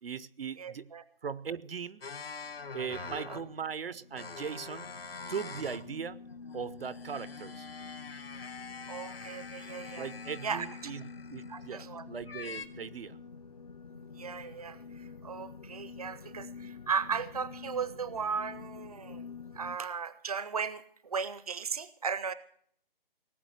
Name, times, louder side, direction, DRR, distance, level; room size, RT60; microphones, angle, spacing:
voice 1, 0.0-0.9 1.2-2.0 2.7-4.9 5.3-6.2 6.5-7.7 10.0-11.0 11.3-13.2, right 6 dB, 75° right, 0.7 m, -39 dB
voice 2, 0.6-1.0 3.3-3.4 8.9-10.1 10.4-10.9 11.5-12.1 14.2-19.2 19.5-22.3, right 6 dB, 40° right, 0.6 m, -36 dB
sound 1, 2.0-3.6 4.1-5.9 6.3-11.8 12.3-12.7, left 4 dB, 90° left, 1.5 m, -45 dB
sound 2, 2.5-19.8, left 5 dB, 45° left, 0.6 m, -48 dB
18.5 x 8.0 x 8.1 m
hypercardioid pair, 175°, 29 cm